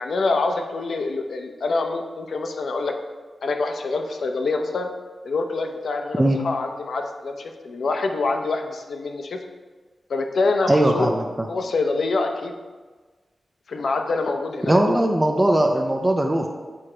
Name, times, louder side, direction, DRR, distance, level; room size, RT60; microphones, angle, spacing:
voice 1, 0.0-2.9 3.4-4.9 5.2-9.4 10.1-11.2 11.5-12.5 13.7-14.8, left 3 dB, 75° left, 4 dB, 0.6 m, -25 dB
voice 2, 10.7-11.2 14.7-16.5, right 1 dB, 15° right, 2 dB, 0.4 m, -19 dB
6.9 x 4.9 x 4.3 m, 1.4 s
wide cardioid pair, 160°, 0 cm